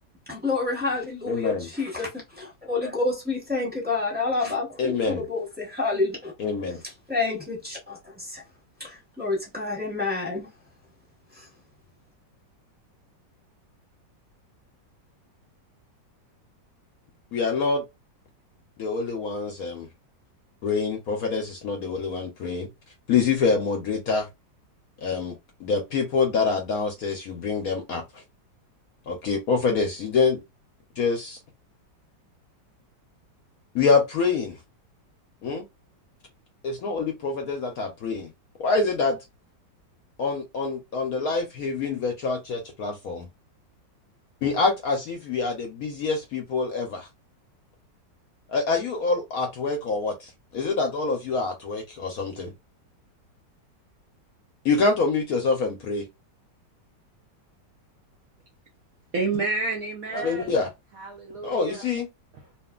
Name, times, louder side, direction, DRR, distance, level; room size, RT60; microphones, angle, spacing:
voice 1, 0.3-6.3 7.1-8.4 8.8-10.5 11.4-11.5, left 3 dB, 5° right, 1.0 m, -29 dB
voice 2, 1.3-1.7 4.8-5.3 6.4-6.8 17.3-17.8 18.8-19.9 20.6-22.7 23.1-24.3 25.0-28.2 29.1-30.4 31.0-31.4 33.7-34.6 35.4-35.7 36.6-38.3 38.6-39.2 40.2-43.3 44.4-47.1 48.5-52.5 54.6-56.0 60.1-60.7 61.4-62.1, left 4 dB, 65° left, 0.9 m, -26 dB
voice 3, 59.1-60.5 61.0-61.9, right 3 dB, 65° right, 0.9 m, -29 dB
2.9 x 2.5 x 2.3 m
omnidirectional pair, 2.0 m